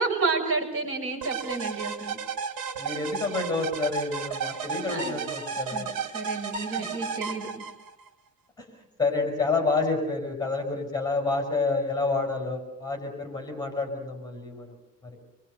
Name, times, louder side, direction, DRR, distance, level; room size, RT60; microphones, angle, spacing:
voice 1, 0.0-2.2 4.9-5.2 5.7-7.5, right 4 dB, 40° right, 1 dB, 6.7 m, -30 dB
sound 1, 1.2-8.1, right 6 dB, 75° right, 4.3 m, -33 dB
voice 2, 2.8-5.9 6.7-6.9 9.0-14.7, left 3 dB, 10° left, 4 dB, 5.7 m, -28 dB
28.5 x 23.5 x 6.7 m, 0.85 s
cardioid pair, 155°, 35 cm